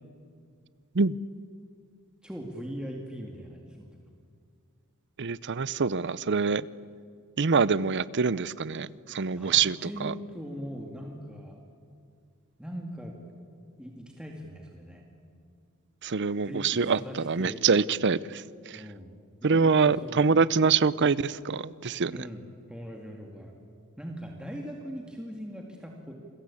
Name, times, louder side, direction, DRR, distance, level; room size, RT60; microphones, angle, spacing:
voice 1, 2.2-3.9 9.3-11.6 12.6-13.2 13.8-15.0 16.4-17.6 18.7-20.4 22.1-23.5 24.0-26.1, equal, 5° right, 0 dB, 2.3 m, -40 dB
voice 2, 5.2-6.7 7.4-10.1 16.0-18.8 19.4-22.1, right 5 dB, 55° right, 19 dB, 0.7 m, -25 dB
29.0 x 21.5 x 8.6 m, 2.3 s
head